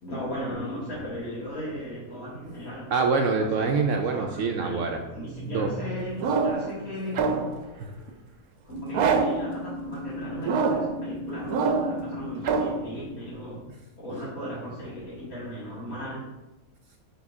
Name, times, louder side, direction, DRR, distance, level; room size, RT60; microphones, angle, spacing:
voice 1, 0.0-2.9 3.5-3.7 4.1-4.8 5.1-7.5 8.6-13.6 14.0-16.2, equal, 75° left, -8 dB, 2.5 m, -36 dB
voice 2, 2.9-5.0 5.3-5.9 7.2-7.4 7.7-7.9, right 4 dB, 70° right, 3 dB, 0.9 m, -26 dB
sound 1, 6.2-6.7 7.1-7.6 8.9-9.5 10.4-11.0 11.5-12.0 12.4-12.8, right 5 dB, 85° right, 1.1 m, -24 dB
sound 2, 8.7-13.7, left 1 dB, 25° right, 0.8 m, -37 dB
8.7 x 3.6 x 3.6 m, 1.0 s
omnidirectional pair, 1.5 m